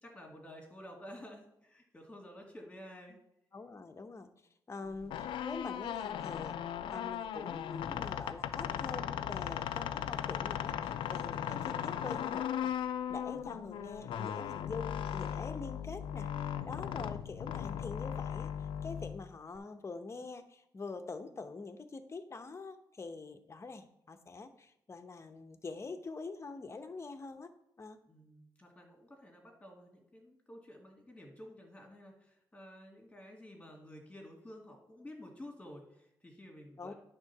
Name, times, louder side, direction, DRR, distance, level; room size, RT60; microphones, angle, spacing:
voice 1, 0.0-3.2 4.8-5.1 13.3-13.8 28.1-36.9, left 1 dB, 15° left, 0 dB, 2.4 m, -52 dB
voice 2, 3.5-4.3 4.7-6.6 6.9-12.7 13.1-27.5 27.8-28.0 36.8-36.9, left 4 dB, 35° left, 8 dB, 0.9 m, -45 dB
sound 1, 4.9-19.6, left 9 dB, 90° left, 0.4 m, -37 dB
9.7 x 3.8 x 5.9 m, 0.79 s
cardioid pair, 90°, 8 cm